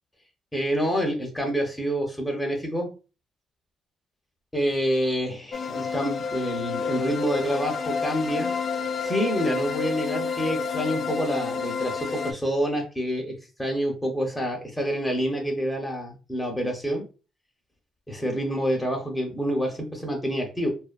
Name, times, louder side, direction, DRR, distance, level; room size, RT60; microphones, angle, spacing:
voice 1, 0.5-2.9 4.5-8.5 9.0-17.0 18.1-20.7, equal, 10° left, 1 dB, 0.6 m, -27 dB
sound 1, 5.5-12.3, left 5 dB, 55° left, 0.3 m, -29 dB
2.4 x 2.4 x 2.2 m, 0.33 s
cardioid pair, 90°, 0 cm